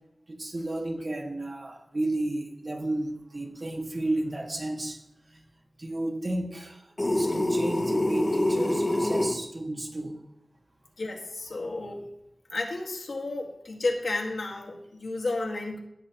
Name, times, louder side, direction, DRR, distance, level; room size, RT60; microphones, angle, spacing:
voice 1, 0.3-5.4 5.8-10.2, right 1 dB, 45° right, 1.8 m, -32 dB
sound 1, 7.0-9.4, left 1 dB, 30° left, 1.1 m, -25 dB
voice 2, 11.0-12.1 12.5-15.8, left 2 dB, 85° left, 1.8 m, -32 dB
16.5 x 7.7 x 3.0 m
wide cardioid pair, 80°, 0 cm